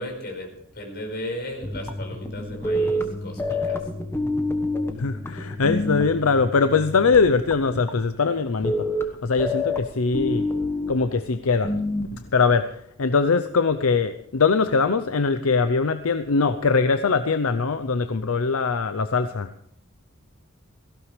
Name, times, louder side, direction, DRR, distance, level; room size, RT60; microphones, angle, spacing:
voice 1, 0.0-3.8, left 1 dB, 50° left, 2 dB, 5.0 m, -35 dB
sound 1, 1.6-12.3 12.6-12.7, left 1 dB, 10° left, 1.2 m, -28 dB
voice 2, 4.9-11.7 12.0-19.5, left 4 dB, 75° left, 10 dB, 0.6 m, -22 dB
17.5 x 16.0 x 3.3 m, 0.72 s
head